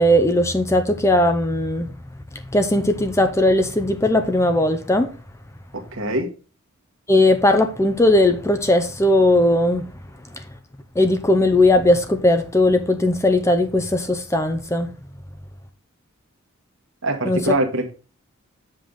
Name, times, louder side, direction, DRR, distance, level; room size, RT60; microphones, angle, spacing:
voice 1, 0.0-1.9 2.3-5.1 7.1-10.0 10.3-10.5 10.9-14.9 17.2-17.4, left 1 dB, 15° left, 0.6 m, -18 dB
voice 2, 5.7-6.3 17.0-17.9, right 2 dB, 65° right, 1.4 m, -24 dB
7.7 x 5.3 x 3.8 m
head